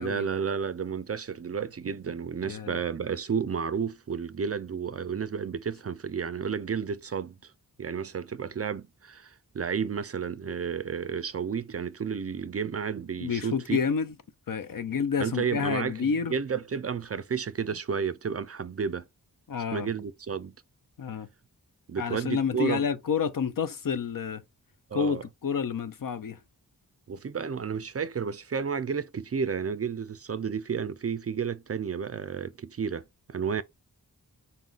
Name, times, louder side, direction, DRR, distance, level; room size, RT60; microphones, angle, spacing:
voice 1, 0.0-7.5 7.8-13.8 15.2-19.1 19.7-20.6 21.9-22.8 24.9-25.2 27.1-33.6, right 6 dB, 40° right, 0.4 m, -32 dB
voice 2, 2.4-2.8 13.2-14.1 14.5-16.3 19.5-19.9 21.0-21.3 22.0-24.4 24.9-26.4, left 6 dB, 60° left, 0.6 m, -29 dB
4.0 x 2.3 x 3.8 m
cardioid pair, 45°, 37 cm